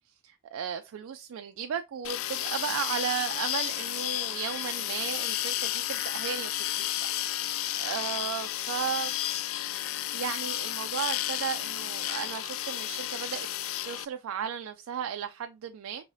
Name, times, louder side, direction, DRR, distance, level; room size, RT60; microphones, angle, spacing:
voice 1, 0.2-6.5 6.8-6.9 7.4-9.2 10.1-13.5 13.8-16.1, right 8 dB, 65° right, 0.3 m, -35 dB
sound 1, 2.0-14.0, left 13 dB, 65° left, 0.3 m, -32 dB
4.7 x 2.8 x 2.7 m
head